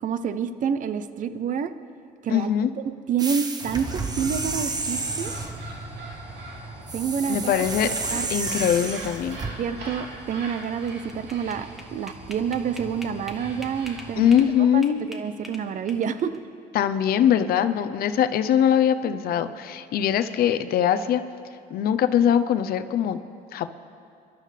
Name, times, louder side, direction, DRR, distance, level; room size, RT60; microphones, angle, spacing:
voice 1, 0.0-1.7 2.2-2.5 2.8-5.3 6.9-8.3 9.6-14.4 14.7-16.3, right 7 dB, 50° right, 12 dB, 0.6 m, -28 dB
voice 2, 2.3-2.7 7.3-7.9 8.3-9.4 14.2-15.0 16.7-21.2 21.7-23.2 23.5-23.7, left 9 dB, 65° left, 11 dB, 0.7 m, -22 dB
sound 1, 3.2-5.6 6.9-9.5, right 3 dB, 25° right, 1.0 m, -31 dB
sound 2, 3.6-14.6, right 2 dB, 85° right, 3.7 m, -40 dB
sound 3, 10.6-14.5 14.8-16.4, left 1 dB, ahead, 1.5 m, -43 dB
25.0 x 12.0 x 3.3 m, 2.4 s
cardioid pair, 110°, 17 cm